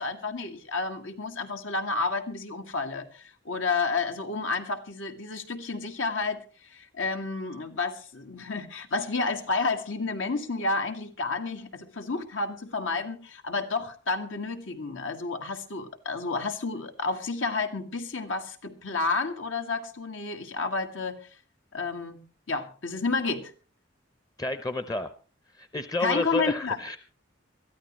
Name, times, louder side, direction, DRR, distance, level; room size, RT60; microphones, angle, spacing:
voice 1, 0.0-21.2 21.7-23.5 26.0-26.8, left 3 dB, 85° left, 5 dB, 1.8 m, -31 dB
voice 2, 24.4-25.1 25.5-27.0, left 2 dB, 20° left, 11 dB, 0.6 m, -30 dB
22.0 x 13.5 x 3.0 m, 0.37 s
head